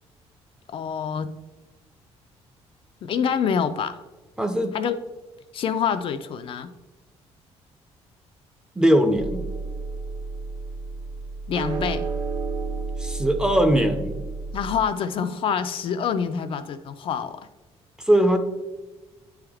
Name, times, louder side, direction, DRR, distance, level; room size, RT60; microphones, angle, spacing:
voice 1, 0.7-1.3 3.0-4.0 4.7-5.0 5.5-6.7 11.5-12.1 14.5-17.5, left 7 dB, 50° left, 9 dB, 0.4 m, -26 dB
voice 2, 4.4-4.8 8.8-9.4 13.0-14.2 18.0-18.4, equal, 5° right, 6 dB, 0.5 m, -20 dB
sound 1, 9.1-14.8, right 4 dB, 45° right, 0.8 m, -31 dB
9.0 x 3.5 x 3.4 m, 1.2 s
cardioid pair, 125°, 11 cm